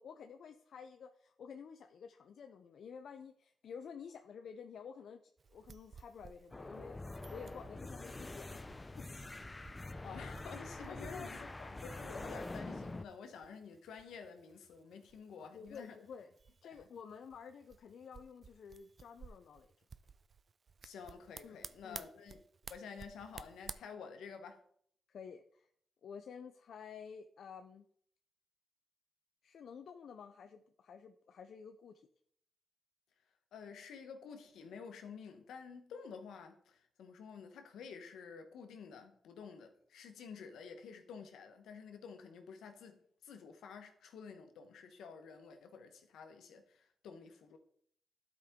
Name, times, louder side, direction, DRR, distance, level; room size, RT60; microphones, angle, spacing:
voice 1, 0.0-5.2 5.5-8.6 9.0-9.1 10.9-11.3 15.4-16.3 16.6-19.7 21.4-22.1 25.1-25.7 26.0-27.9 29.4-32.1, left 6 dB, 70° left, 0.5 m, -51 dB
sound 1, 5.4-23.7, right 5 dB, 50° right, 0.4 m, -55 dB
sound 2, 6.5-13.1, left 2 dB, 20° left, 0.5 m, -45 dB
voice 2, 10.0-16.0 20.8-22.4 22.7-24.6 33.5-47.6, left 6 dB, 90° left, 1.1 m, -50 dB
12.0 x 5.1 x 3.7 m
cardioid pair, 75°, 0 cm